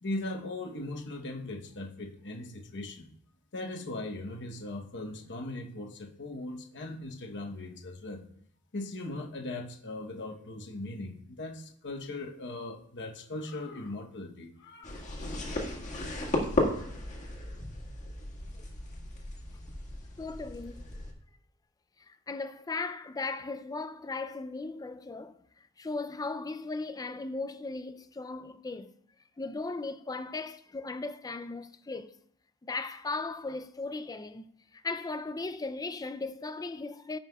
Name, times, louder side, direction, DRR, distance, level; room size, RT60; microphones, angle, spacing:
voice 1, 0.0-3.1 3.5-8.2 8.7-15.0, left 2 dB, 55° left, 1.0 m, -39 dB
sound 1, 14.8-21.1, left 1 dB, 35° left, 1.8 m, -35 dB
voice 2, 20.2-20.9 22.0-25.4 25.8-28.9 29.4-32.2 32.6-37.2, left 3 dB, 15° left, 0.4 m, -37 dB
16.0 x 5.6 x 2.3 m
head